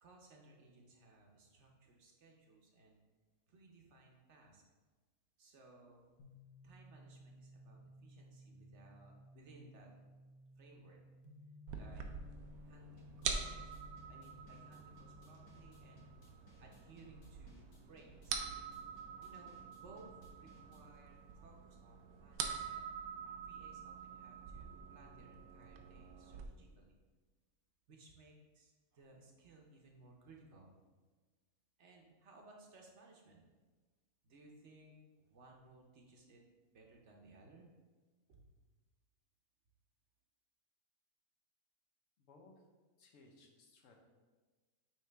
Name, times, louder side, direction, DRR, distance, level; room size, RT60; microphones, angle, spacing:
voice 1, 0.0-3.0 3.5-4.6 5.4-6.1 6.6-9.9 10.6-11.0 11.7-12.0 12.6-13.8 14.1-16.0 16.6-18.4 19.1-22.8 23.2-26.9 27.9-30.8 31.8-33.4 34.2-36.4 36.7-37.7 38.3-38.5, right 2 dB, 55° right, 0 dB, 1.0 m, -61 dB
sound 1, 6.2-19.8, left 2 dB, 40° left, 0.7 m, -60 dB
sound 2, 11.7-26.5, right 6 dB, 85° right, 1.1 m, -46 dB
sound 3, 13.0-21.0, left 1 dB, 90° left, 1.7 m, -65 dB
voice 2, 42.2-42.5 43.0-43.9, left 3 dB, 60° left, 2 dB, 1.2 m, -62 dB
8.7 x 3.2 x 3.4 m, 1.3 s
omnidirectional pair, 1.6 m